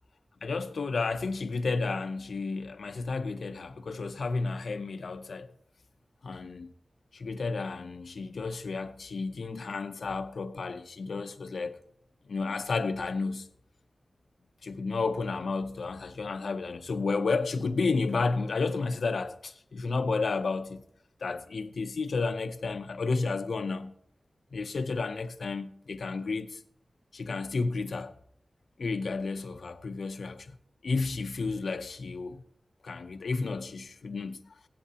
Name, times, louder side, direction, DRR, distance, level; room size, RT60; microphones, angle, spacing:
voice 1, 0.4-5.5 6.2-6.7 7.1-11.8 12.3-13.5 14.6-20.8 21.2-23.9 24.5-26.6 27.1-28.2 28.8-30.5 30.8-32.4 32.8-34.5, left 4 dB, 80° left, 0.6 m, -32 dB
16.0 x 11.5 x 2.9 m
wide cardioid pair, 90°, 0 cm